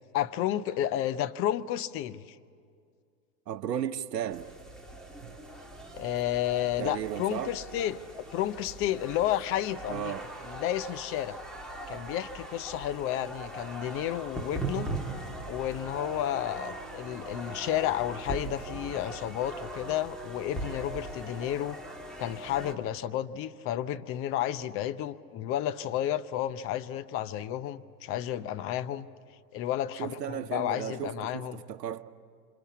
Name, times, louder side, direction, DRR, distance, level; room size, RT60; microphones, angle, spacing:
voice 1, 0.1-2.4 5.9-8.0 8.3-10.1 10.4-11.4 11.9-14.9 15.4-21.8 22.2-29.1 29.5-31.6, left 12 dB, 25° left, 0.7 m, -31 dB
voice 2, 3.5-4.5 5.2-5.3 6.8-7.5 9.9-10.3 30.0-32.0, right 10 dB, 75° right, 1.1 m, -35 dB
sound 1, 4.3-22.7, right 2 dB, ahead, 2.5 m, -40 dB
27.0 x 26.0 x 8.4 m
hypercardioid pair, 110°, 49 cm